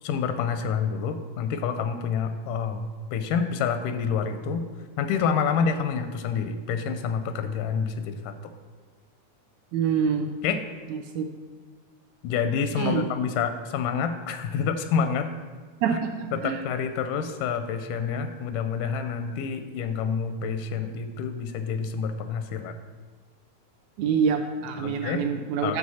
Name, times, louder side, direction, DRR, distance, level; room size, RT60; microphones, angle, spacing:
voice 1, 0.0-4.6 5.0-8.3 10.4-10.7 12.2-15.3 15.9-16.0 16.3-22.7 24.8-25.3 25.6-25.8, left 6 dB, 85° left, 8 dB, 2.1 m, -28 dB
voice 2, 9.7-10.3 11.1-11.3 12.8-13.1 15.8-16.6 24.0-25.8, right 7 dB, 80° right, 5 dB, 1.7 m, -26 dB
9.6 x 6.3 x 4.1 m, 1.4 s
omnidirectional pair, 3.6 m